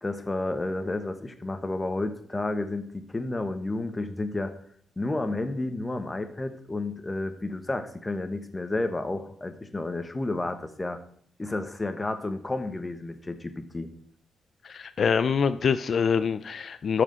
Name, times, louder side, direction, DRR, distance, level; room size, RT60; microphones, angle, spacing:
voice 1, 0.0-4.5 5.0-11.0 11.4-13.9, left 2 dB, 20° left, 9 dB, 1.2 m, -31 dB
voice 2, 14.6-17.0, left 6 dB, 55° left, 12 dB, 0.4 m, -25 dB
13.0 x 5.0 x 6.3 m, 0.64 s
cardioid pair, 115°, 0 cm